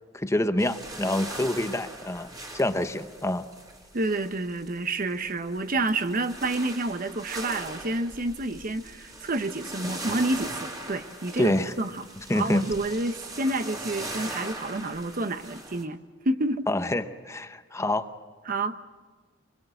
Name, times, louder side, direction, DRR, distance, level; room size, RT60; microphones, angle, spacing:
voice 1, 0.1-3.4 11.4-11.7 12.3-12.6 16.7-18.1, left 1 dB, 15° left, 9 dB, 0.8 m, -26 dB
sound 1, 0.6-15.8, right 1 dB, 20° right, 2.6 m, -40 dB
voice 2, 3.9-12.0 12.3-16.0 16.2-16.7 18.5-18.8, right 2 dB, 45° right, 10 dB, 0.9 m, -29 dB
25.0 x 22.0 x 7.8 m, 1.4 s
head